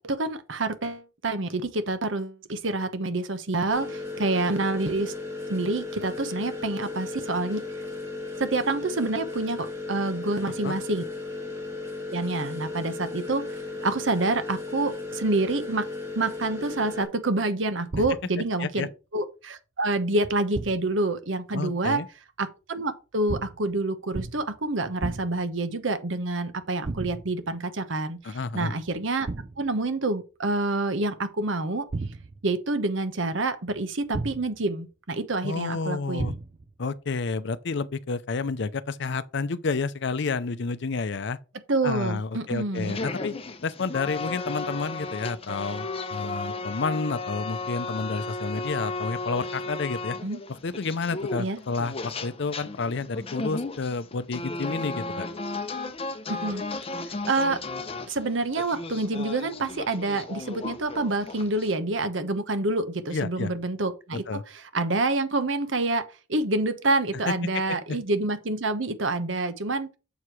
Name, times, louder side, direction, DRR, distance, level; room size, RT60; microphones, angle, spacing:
voice 1, 0.0-5.1 5.5-7.6 8.4-11.0 12.1-13.6 13.8-15.9 16.1-22.0 22.4-29.3 29.6-31.9 32.4-36.4 41.7-42.9 50.2-50.4 51.4-51.6 56.3-56.6 57.3-57.6 58.1-69.9, right 2 dB, 75° right, 1.0 m, -27 dB
sound 1, 3.7-17.0, left 3 dB, 15° right, 2.3 m, -35 dB
sound 2, 17.9-18.5 20.5-21.0 23.3-23.7 24.1-24.6 25.0-25.5 26.8-27.4 29.3-29.7 31.9-32.5 34.1-34.7 36.2-36.7, right 3 dB, 40° right, 0.5 m, -34 dB
voice 2, 21.5-22.1 28.2-28.7 35.4-36.4 36.8-41.4 41.8-43.3 43.6-50.2 50.5-55.3 63.1-63.5 64.1-64.4 67.3-67.4 67.7-68.0, left 4 dB, 65° left, 0.6 m, -30 dB
sound 3, 42.8-61.7, left 3 dB, 30° left, 0.8 m, -35 dB
7.1 x 4.7 x 4.8 m
head